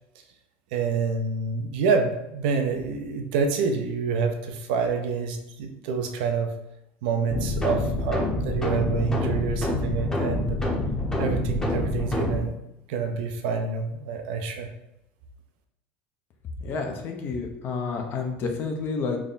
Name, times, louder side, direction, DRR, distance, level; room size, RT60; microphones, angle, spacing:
voice 1, 0.7-6.5 7.0-10.6 11.2-12.5 12.9-14.7, right 5 dB, 80° right, 4 dB, 0.6 m, -27 dB
tole froissée, 7.3-12.4, left 2 dB, 10° left, 0.8 m, -27 dB
voice 2, 16.6-19.2, left 4 dB, 45° left, 4 dB, 0.7 m, -30 dB
3.5 x 2.2 x 3.9 m, 0.85 s
supercardioid pair, 110°, 5 cm